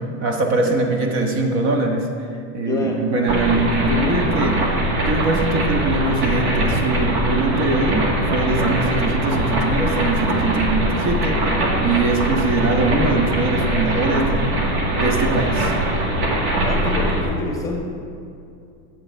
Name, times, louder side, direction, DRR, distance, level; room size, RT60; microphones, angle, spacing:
voice 1, 0.0-2.3 2.5-4.8 5.1-14.5 15.0-15.7, right 3 dB, 45° right, 2 dB, 1.4 m, -22 dB
voice 2, 0.6-1.1 2.7-3.0 16.6-17.8, left 2 dB, 10° left, 0 dB, 1.1 m, -27 dB
sound 1, 3.3-17.2, right 1 dB, 60° right, 2.1 m, -22 dB
11.0 x 7.5 x 4.6 m, 2.5 s
supercardioid pair, 130°, 36 cm